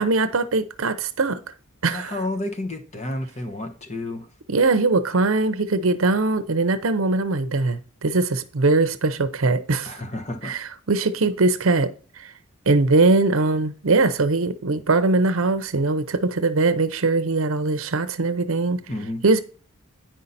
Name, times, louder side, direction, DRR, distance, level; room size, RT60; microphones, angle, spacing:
voice 1, 0.0-1.4 1.8-2.1 4.5-10.0 10.4-11.9 12.2-12.3 12.7-18.8 19.2-19.4, right 3 dB, 70° right, 0.7 m, -21 dB
voice 2, 1.9-4.3 9.9-10.5 18.9-19.2, left 1 dB, 35° left, 1.0 m, -31 dB
9.1 x 5.6 x 4.1 m
head